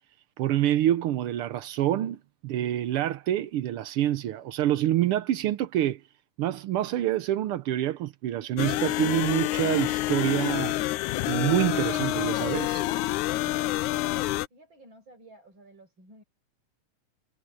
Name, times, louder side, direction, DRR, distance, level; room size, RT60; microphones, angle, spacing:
voice 1, 0.4-6.0 6.4-10.8 11.2-12.8, right 12 dB, 80° right, 1.2 m, -27 dB
sound 1, 8.6-14.5, left 16 dB, 80° left, 2.0 m, -28 dB
voice 2, 13.4-14.2 14.5-16.2, right 1 dB, 35° right, 7.3 m, -53 dB
omnidirectional pair, 3.5 m